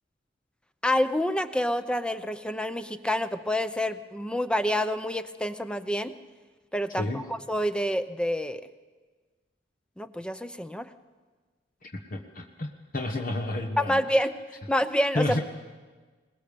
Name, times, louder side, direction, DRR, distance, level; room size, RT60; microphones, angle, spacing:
voice 1, 0.8-6.1 6.7-8.6 10.0-10.9 13.8-15.4, left 1 dB, 5° left, 10 dB, 0.7 m, -28 dB
voice 2, 11.8-14.0 15.1-15.4, left 1 dB, 50° left, 2 dB, 1.3 m, -31 dB
22.0 x 20.0 x 6.9 m, 1.4 s
head